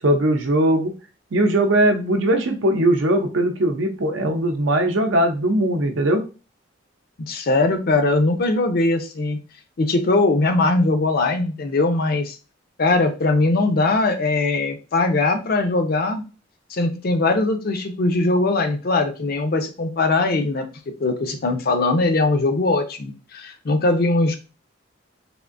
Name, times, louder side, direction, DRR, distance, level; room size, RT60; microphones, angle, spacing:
voice 1, 0.0-0.9 1.3-6.2, right 1 dB, 75° right, 5 dB, 0.6 m, -19 dB
voice 2, 7.3-9.4 9.8-12.4 12.8-16.2 16.7-20.6 21.0-24.4, left 2 dB, 50° left, 6 dB, 0.5 m, -20 dB
3.5 x 2.5 x 2.5 m, 0.32 s
head